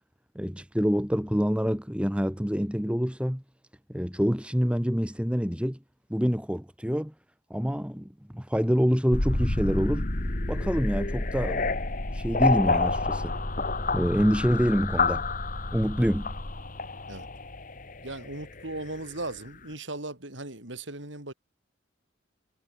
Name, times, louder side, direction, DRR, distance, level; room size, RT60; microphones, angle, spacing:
voice 1, 0.4-3.4 3.9-5.8 6.1-7.1 7.5-10.1 10.5-11.7 12.1-13.4 13.9-15.2 15.7-16.4, equal, 5° right, 2.3 m, -26 dB
sound 1, 9.1-19.1, left 3 dB, 45° left, 1.8 m, -29 dB
voice 2, 18.0-21.3, right 2 dB, 70° right, 5.6 m, -37 dB
head